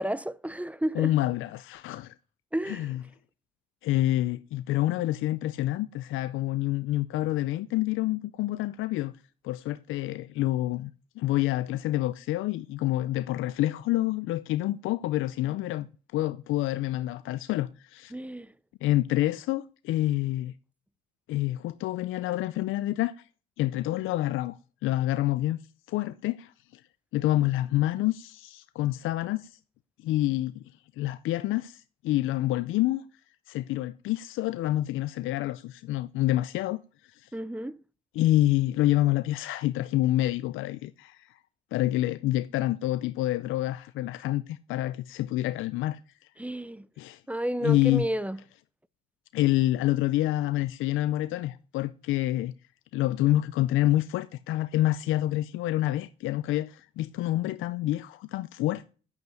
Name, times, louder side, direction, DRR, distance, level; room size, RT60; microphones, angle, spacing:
voice 1, 0.0-1.1 2.5-2.9 18.1-18.5 37.3-37.8 46.4-46.9 47.3-48.4, right 1 dB, 5° right, 0.5 m, -31 dB
voice 2, 0.9-2.1 2.7-3.0 3.8-9.1 9.4-10.9 11.2-15.9 16.1-18.1 18.8-20.5 21.3-23.1 23.6-24.6 24.8-25.6 25.9-26.8 27.1-29.6 30.0-30.6 31.0-33.0 33.5-37.3 38.1-41.3 41.7-46.0 47.0-47.2 47.6-48.1 49.3-52.5 52.9-58.9, left 15 dB, 90° left, 0.5 m, -27 dB
9.7 x 8.0 x 9.1 m
cardioid pair, 90°, 20 cm